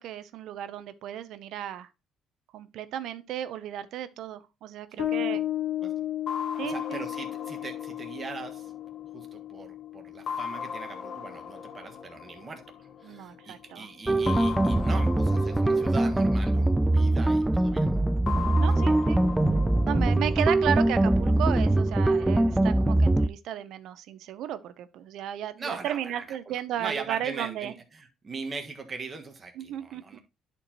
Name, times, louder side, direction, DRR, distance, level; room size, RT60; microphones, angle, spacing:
voice 1, 0.0-1.9 2.5-5.4 6.6-7.1 13.0-13.9 18.6-19.2 19.8-27.7 29.6-30.2, right 11 dB, 70° right, 0.6 m, -34 dB
voice 2, 4.9-5.4 5.8-5.9 6.6-8.7 9.1-18.0 18.4-18.6 25.6-30.2, right 4 dB, 30° right, 1.4 m, -41 dB
Bass guitar, 5.0-12.1, left 12 dB, 65° left, 2.1 m, -35 dB
sound 1, 6.3-9.6 10.3-13.2 14.3-17.4 18.3-21.4, left 7 dB, 45° left, 0.8 m, -39 dB
sound 2, 14.1-23.3, right 2 dB, 10° right, 0.3 m, -23 dB
10.5 x 4.5 x 2.9 m
cardioid pair, 110°, 0 cm